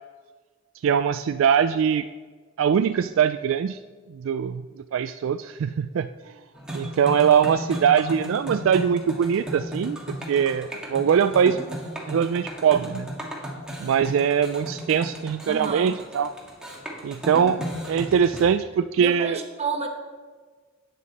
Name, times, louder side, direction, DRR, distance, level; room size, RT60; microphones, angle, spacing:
voice 1, 0.8-2.0 2.6-3.8 4.1-4.6 4.9-6.3 6.7-11.6 12.1-13.1 13.8-16.3 17.0-17.6 17.9-19.4, right 7 dB, 70° right, 10 dB, 0.3 m, -22 dB
sound 1, 6.5-18.4, equal, 5° right, 1.7 m, -35 dB
voice 2, 15.5-16.0 19.0-19.9, right 4 dB, 30° right, 3 dB, 1.2 m, -30 dB
11.0 x 9.0 x 4.2 m, 1.4 s
head